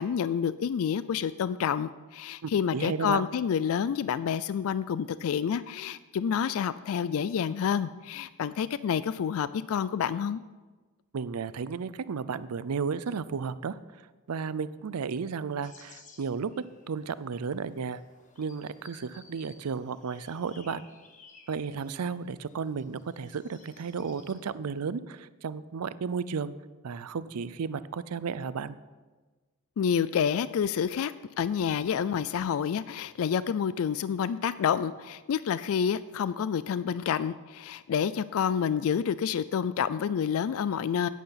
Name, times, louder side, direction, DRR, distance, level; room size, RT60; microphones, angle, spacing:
voice 1, 0.0-10.4 29.8-41.1, left 7 dB, 65° left, 16 dB, 0.3 m, -28 dB
voice 2, 2.4-3.2 11.1-13.8 14.3-16.5 16.9-18.0 18.4-20.8 21.5-26.5 26.8-28.8, right 5 dB, 90° right, 16 dB, 0.5 m, -33 dB
sound 1, 15.6-24.4, left 4 dB, 35° left, 1.3 m, -57 dB
11.0 x 9.4 x 5.8 m, 1.3 s
head